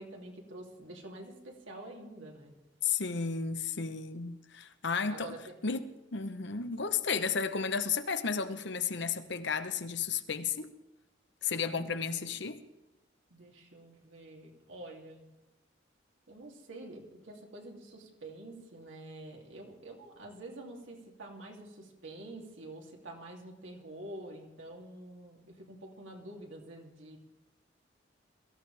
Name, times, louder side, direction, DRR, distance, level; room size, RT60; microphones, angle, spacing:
voice 1, 0.0-2.5 5.1-5.6 11.7-12.1 13.3-15.2 16.3-27.2, right 1 dB, 85° right, 2.8 m, -47 dB
voice 2, 2.8-5.3 5.6-10.7 11.4-12.6, left 6 dB, 65° left, 0.9 m, -33 dB
22.5 x 14.5 x 3.4 m
head